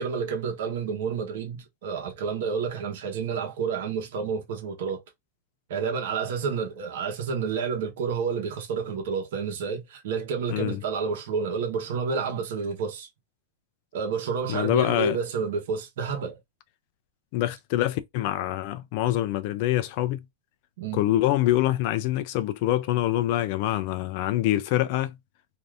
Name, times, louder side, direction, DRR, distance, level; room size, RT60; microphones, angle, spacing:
voice 1, 0.0-5.0 5.7-13.1 13.9-16.4 20.8-21.0, right 5 dB, 55° right, 1.0 m, -29 dB
voice 2, 14.5-15.2 17.3-20.2 20.9-25.2, left 14 dB, 40° left, 0.3 m, -25 dB
2.6 x 2.4 x 3.3 m
supercardioid pair, 175°, 0 cm